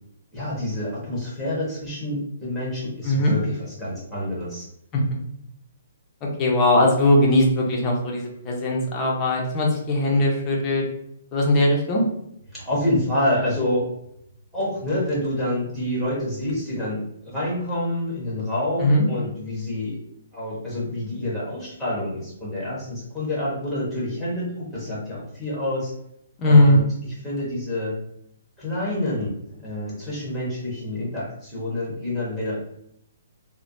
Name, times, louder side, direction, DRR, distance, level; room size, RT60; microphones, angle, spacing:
voice 1, 0.3-4.7 12.5-13.9 14.5-20.0 20.3-25.9 26.4-28.0 28.6-32.7, left 1 dB, ahead, -7 dB, 1.1 m, -27 dB
voice 2, 6.4-10.8 11.3-12.0 18.8-19.0 26.4-26.9, left 1 dB, 20° left, -2 dB, 0.6 m, -19 dB
3.2 x 2.1 x 2.6 m, 0.75 s
hypercardioid pair, 165°, 0 cm